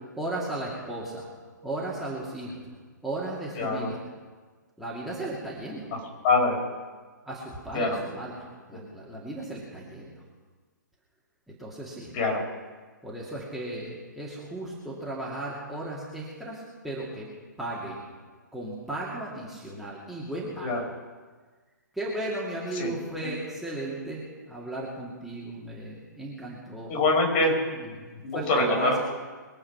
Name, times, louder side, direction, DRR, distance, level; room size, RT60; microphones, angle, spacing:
voice 1, 0.2-1.3 1.6-2.7 3.0-4.0 4.8-5.9 7.2-10.2 11.5-12.2 13.0-17.3 17.6-18.0 18.5-20.7 21.9-26.9 27.8-28.9, right 1 dB, ahead, -8 dB, 2.5 m, -35 dB
voice 2, 3.6-3.9 5.9-6.0 6.2-6.6 7.7-8.0 8.7-8.8 12.1-12.4 20.6-20.8 22.8-22.9 23.2-23.3 26.9-27.6 28.2-29.0, left 2 dB, 35° left, 1 dB, 4.4 m, -24 dB
22.5 x 8.6 x 5.9 m, 1.4 s
figure-of-eight pair, 125°, 10 cm